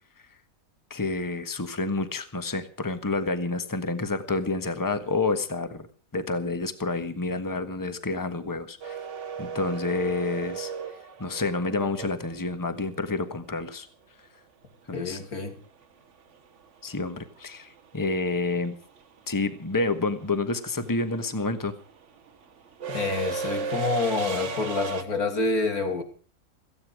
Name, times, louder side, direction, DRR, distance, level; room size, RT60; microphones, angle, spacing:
voice 1, 0.9-5.9 6.1-9.0 9.4-10.7 11.2-13.9 14.9-15.2 16.8-18.8 19.3-21.7, left 3 dB, 15° left, 10 dB, 1.3 m, -29 dB
sound 1, 8.8-12.9 15.3-15.4 16.7-17.0 17.2-25.0, right 5 dB, 55° right, 1.4 m, -36 dB
voice 2, 14.9-15.6 22.9-26.0, left 3 dB, 80° left, 6 dB, 3.1 m, -27 dB
17.5 x 15.0 x 4.9 m, 0.41 s
omnidirectional pair, 1.6 m